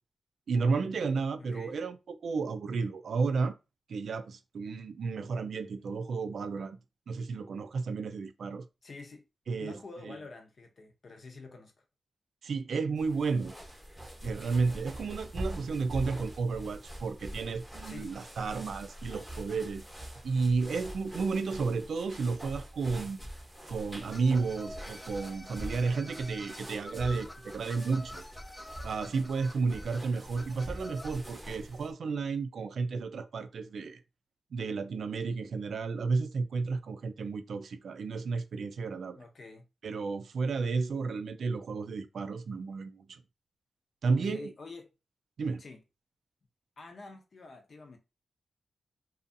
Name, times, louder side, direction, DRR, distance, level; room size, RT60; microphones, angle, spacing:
voice 1, 0.5-3.6 3.9-6.8 7.1-8.7 9.5-9.7 10.0-10.1 12.4-13.5 14.2-19.8 20.2-23.2 23.7-28.3 28.8-34.0 34.5-39.2 39.8-43.2 44.0-44.5 45.4-45.6, right 4 dB, 75° right, 0.3 m, -32 dB
voice 2, 1.4-1.8 8.8-9.2 9.6-11.8 17.8-18.1 39.2-39.6 44.1-44.9 45.6-45.8 46.8-48.0, left 3 dB, 55° left, 0.7 m, -47 dB
sound 1, 13.0-31.9, right 1 dB, 5° right, 0.9 m, -44 dB
sound 2, 24.1-31.2, left 1 dB, 15° left, 0.3 m, -48 dB
2.6 x 2.3 x 2.5 m
cardioid pair, 90°, 0 cm